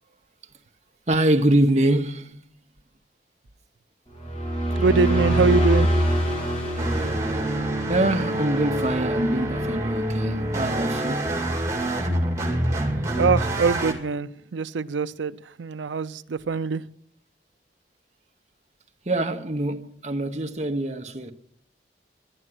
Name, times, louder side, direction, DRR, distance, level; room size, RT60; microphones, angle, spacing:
voice 1, 1.1-2.4 7.9-11.3 19.1-21.3, right 1 dB, 40° right, 0.9 m, -24 dB
sound 1, 4.1-8.0, equal, 30° left, 3.7 m, -23 dB
voice 2, 4.8-5.9 13.2-16.8, right 4 dB, 85° right, 0.5 m, -23 dB
sound 2, 6.8-13.9, right 1 dB, 15° right, 2.0 m, -26 dB
11.0 x 11.0 x 7.7 m
head